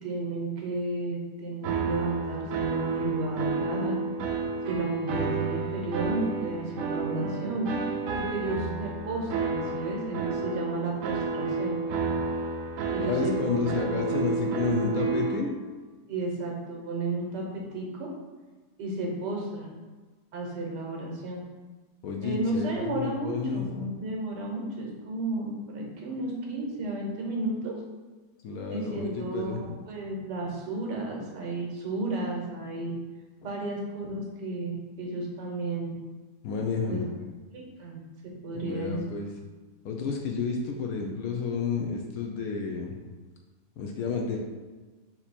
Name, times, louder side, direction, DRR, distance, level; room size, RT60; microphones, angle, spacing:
voice 1, 0.0-4.0 4.6-7.7 8.1-11.7 12.9-13.6 13.9-14.1 16.1-17.4 17.7-18.1 18.8-19.7 20.3-21.4 22.2-27.7 28.7-32.9 33.4-35.9 36.9-37.0 37.5-38.0 38.4-39.0, right 2 dB, 85° right, -1 dB, 1.6 m, -33 dB
sound 1, 1.6-15.4, right 4 dB, 70° right, 0.8 m, -31 dB
voice 2, 13.0-15.5 22.0-23.8 28.4-29.8 36.4-37.1 38.6-39.3 39.8-43.0 43.8-44.4, left 5 dB, 70° left, 1 dB, 0.9 m, -31 dB
4.3 x 2.7 x 4.2 m, 1.3 s
omnidirectional pair, 1.8 m